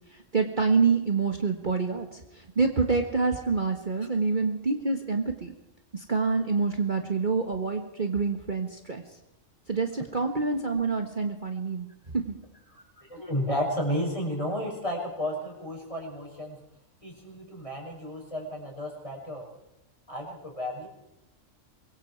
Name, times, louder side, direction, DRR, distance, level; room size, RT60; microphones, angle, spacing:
voice 1, 0.1-5.5 5.9-9.0 9.7-12.4, right 4 dB, 35° right, 4 dB, 1.6 m, -27 dB
voice 2, 12.7-16.6 17.0-19.4 20.1-20.9, equal, 25° left, 0 dB, 6.5 m, -32 dB
25.0 x 22.0 x 4.7 m, 0.90 s
omnidirectional pair, 1.4 m